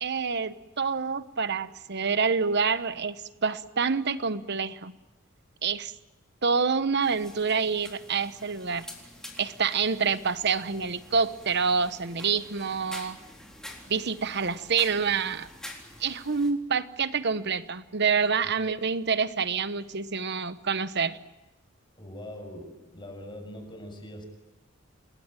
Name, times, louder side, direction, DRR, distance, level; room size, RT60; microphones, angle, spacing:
voice 1, 0.0-4.9 5.6-5.9 6.4-8.9 9.4-13.2 13.9-15.5 16.0-21.2, right 5 dB, 55° right, 13 dB, 1.1 m, -27 dB
sound 1, 7.0-16.5, left 1 dB, 5° left, 3.8 m, -47 dB
voice 2, 22.0-24.2, left 1 dB, 25° left, 3 dB, 6.8 m, -42 dB
28.0 x 21.0 x 9.0 m, 1.1 s
head